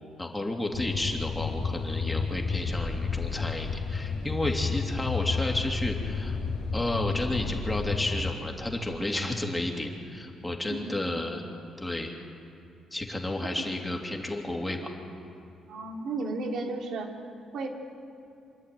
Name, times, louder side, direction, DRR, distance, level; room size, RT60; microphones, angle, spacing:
voice 1, 0.2-6.4 6.7-11.4 11.8-12.1 12.9-14.9, left 1 dB, 10° left, 1 dB, 2.8 m, -32 dB
sound 1, 0.7-8.3, left 5 dB, 60° left, 2.1 m, -31 dB
voice 2, 15.7-17.1 17.5-17.7, right 3 dB, 70° right, 2 dB, 2.6 m, -33 dB
26.5 x 11.0 x 9.3 m, 2.6 s
cardioid pair, 90°, 0 cm